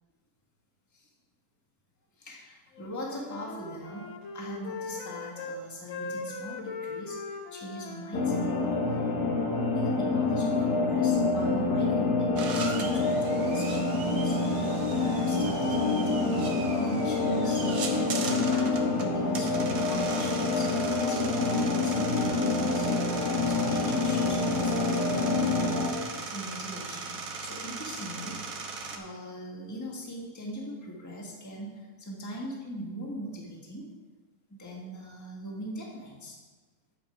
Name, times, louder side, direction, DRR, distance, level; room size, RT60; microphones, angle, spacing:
voice 1, 2.2-9.0 9.7-14.4 15.0-16.4 16.7-17.6 18.2-20.7 21.0-22.9 23.5-25.7 26.3-28.4 28.9-33.9 34.5-36.4, equal, 10° left, -2 dB, 1.5 m, -41 dB
Wind instrument woodwind instrument, 2.7-5.6 5.9-9.2, left 4 dB, 55° left, 1.0 m, -40 dB
sound 1, 8.1-25.9, left 3 dB, 80° left, 1.8 m, -27 dB
sound 2, 12.4-29.0, right 4 dB, 65° right, 1.4 m, -39 dB
9.9 x 7.4 x 4.9 m, 1.3 s
omnidirectional pair, 1.7 m